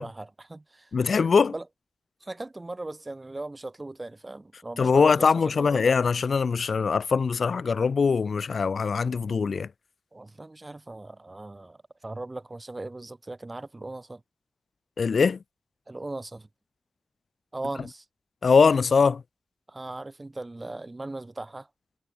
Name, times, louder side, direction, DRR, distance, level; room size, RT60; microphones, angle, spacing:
voice 1, 0.0-0.9 1.5-1.7 2.2-5.9 10.1-14.2 15.9-16.5 17.5-18.1 19.7-21.7, right 2 dB, 20° right, 2.4 m, -38 dB
voice 2, 0.9-1.5 4.8-9.7 15.0-15.4 18.4-19.2, left 5 dB, 65° left, 0.4 m, -22 dB
wide cardioid pair, 145°, 0 cm